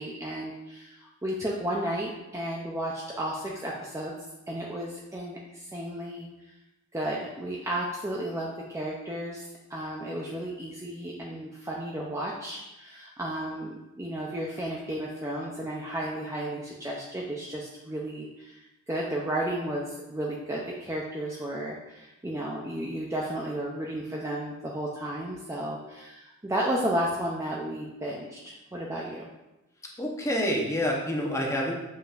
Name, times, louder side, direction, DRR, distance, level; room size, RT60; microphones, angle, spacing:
voice 1, 0.0-4.1 4.5-6.3 6.9-29.3, right 1 dB, 15° right, -3 dB, 0.5 m, -33 dB
voice 2, 30.0-31.7, equal, 15° left, -1 dB, 0.9 m, -27 dB
7.1 x 5.6 x 2.5 m, 0.97 s
head